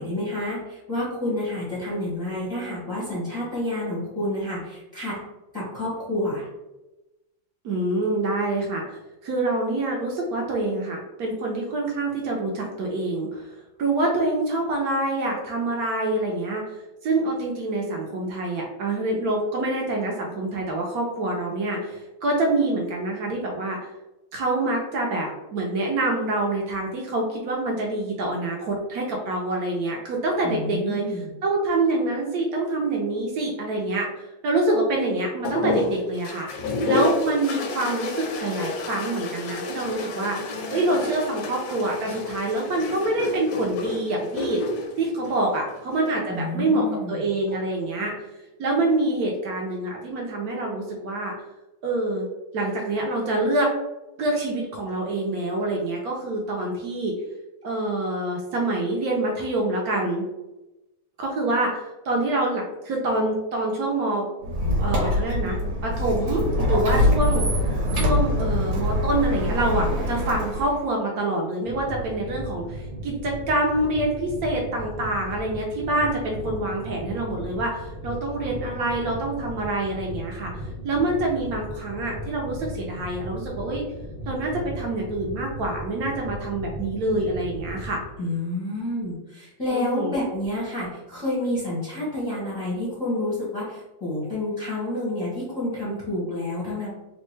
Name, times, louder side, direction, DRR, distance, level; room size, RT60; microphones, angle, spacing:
voice 1, 0.0-5.2 5.5-6.5 30.4-31.3 46.3-47.2 88.2-96.9, left 1 dB, 25° left, -7 dB, 0.4 m, -29 dB
voice 2, 7.6-23.9 24.3-44.6 45.0-48.1 48.6-51.3 51.8-52.3 52.5-53.7 54.2-57.1 57.6-60.3 61.2-64.3 64.8-67.5 67.9-80.5 80.8-83.8 84.3-88.0 89.7-90.1, right 2 dB, 75° right, -1 dB, 0.8 m, -26 dB
sound 1, 35.4-46.1 47.3-47.9, left 2 dB, 75° left, 0.9 m, -30 dB
Squeak, 64.4-70.8, left 1 dB, 55° right, 1.1 m, -24 dB
sound 2, 71.6-88.0, equal, 30° right, 0.7 m, -36 dB
3.6 x 2.1 x 3.1 m, 1.0 s
omnidirectional pair, 2.2 m